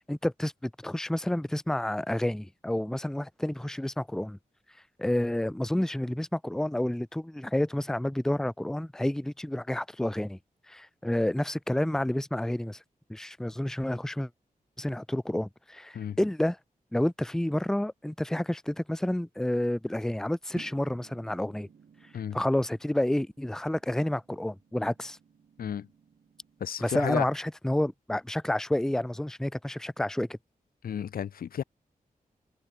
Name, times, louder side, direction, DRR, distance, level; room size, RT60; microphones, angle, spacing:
voice 1, 0.1-4.4 5.0-10.4 10.7-12.8 13.1-14.3 14.8-16.6 16.9-21.7 22.3-25.2 26.8-30.4, left 1 dB, 5° left, 0.6 m, -29 dB
sound 1, 20.6-26.8, right 7 dB, 85° right, 3.2 m, -55 dB
voice 2, 26.6-27.3 30.8-31.6, left 8 dB, 85° left, 0.6 m, -32 dB
wide cardioid pair, 145°, 15 cm